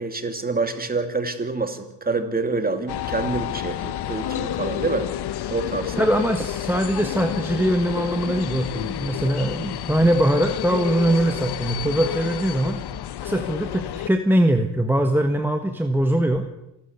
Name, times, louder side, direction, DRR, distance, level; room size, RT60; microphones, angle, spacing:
voice 1, 0.0-5.1 5.5-6.1, right 3 dB, 20° right, 8 dB, 2.6 m, -27 dB
sound 1, 2.9-14.1, left 11 dB, 65° left, 1.1 m, -30 dB
voice 2, 6.0-12.8 13.2-16.4, right 1 dB, 5° right, 5 dB, 1.4 m, -22 dB
27.0 x 13.0 x 8.2 m, 0.90 s
cardioid pair, 115°, 42 cm